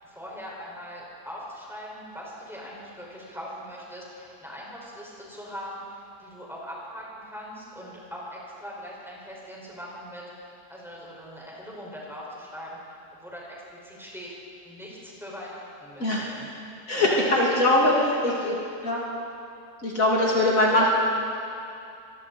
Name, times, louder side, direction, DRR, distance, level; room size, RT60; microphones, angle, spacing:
voice 1, 0.0-14.3 14.6-16.5 16.9-17.5 17.9-18.3 20.2-20.5 20.7-20.9, equal, ahead, -5 dB, 5.8 m, -41 dB
voice 2, 16.0-16.3 16.9-18.5 18.8-19.0 19.8-20.9, left 1 dB, 60° left, -5 dB, 3.2 m, -22 dB
26.0 x 22.5 x 4.4 m, 2.5 s
omnidirectional pair, 1.7 m